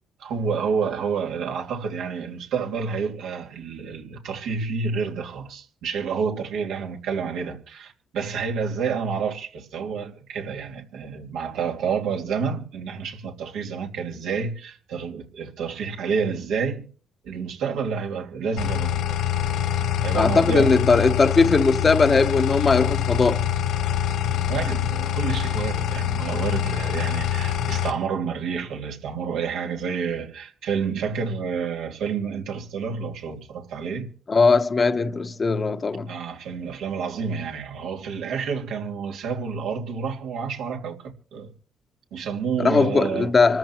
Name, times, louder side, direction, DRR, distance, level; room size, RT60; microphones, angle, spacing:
voice 1, 0.2-16.9 17.2-19.2 20.0-20.8 24.3-34.1 36.0-41.5 42.1-43.4, right 6 dB, 90° right, 3.0 m, -29 dB
sound 1, 18.6-27.9, left 10 dB, 85° left, 3.1 m, -25 dB
voice 2, 20.1-23.5 34.3-36.1 42.6-43.6, left 4 dB, 30° left, 1.0 m, -19 dB
27.0 x 14.0 x 3.0 m
cardioid pair, 120°, 0 cm